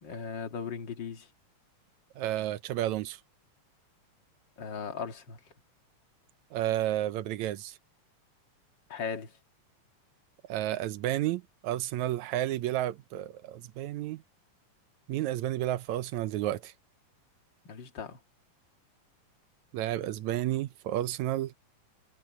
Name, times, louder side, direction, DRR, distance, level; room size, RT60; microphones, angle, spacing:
voice 1, 0.0-1.3 4.6-5.4 8.9-9.4 17.6-18.2, left 6 dB, 40° left, 2.1 m, -38 dB
voice 2, 2.2-3.2 6.5-7.8 10.5-14.2 15.1-16.7 19.7-21.5, right 13 dB, 75° right, 1.9 m, -31 dB
omnidirectional pair, 3.7 m